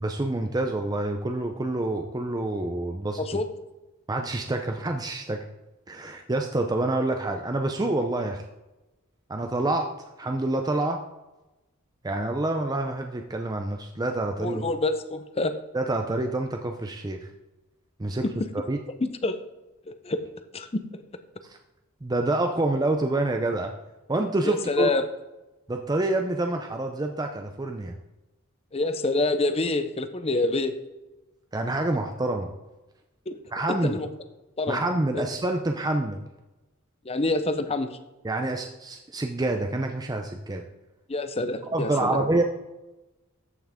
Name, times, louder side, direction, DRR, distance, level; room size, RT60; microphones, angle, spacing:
voice 1, 0.0-3.2 4.1-5.4 5.9-8.4 9.3-9.9 10.2-11.0 12.0-14.7 15.7-17.3 18.0-18.2 18.7-18.8 21.4-21.6 22.0-23.7 24.1-24.9 25.7-27.9 31.5-32.5 33.5-33.9 34.7-36.2 38.2-40.6 41.7-42.4, right 2 dB, 20° right, 4 dB, 0.5 m, -27 dB
voice 2, 14.4-15.5 18.2-18.3 19.0-19.4 19.9-20.2 20.5-20.7 24.4-25.1 28.7-30.7 33.3-33.4 33.7-34.1 34.6-34.8 35.1-35.2 37.0-38.0 41.1-42.2, left 2 dB, 30° left, 10 dB, 0.6 m, -27 dB
13.5 x 5.9 x 3.6 m, 1.0 s
head